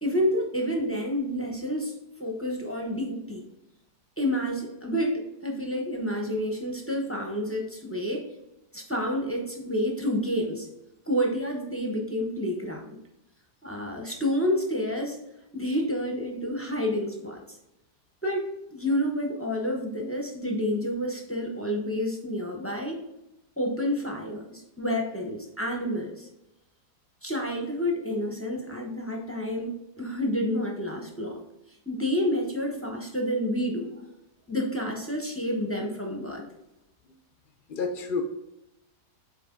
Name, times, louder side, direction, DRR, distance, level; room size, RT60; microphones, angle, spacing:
voice 1, 0.0-3.4 4.2-8.2 8.7-10.7 11.1-13.0 13.6-15.2 15.5-17.6 18.2-23.0 23.6-26.3 27.2-31.4 31.9-33.9 34.5-36.4, equal, 15° left, 0 dB, 0.4 m, -29 dB
voice 2, 37.7-38.2, left 5 dB, 70° left, 5 dB, 0.5 m, -30 dB
6.7 x 4.2 x 3.7 m, 0.91 s
omnidirectional pair, 1.8 m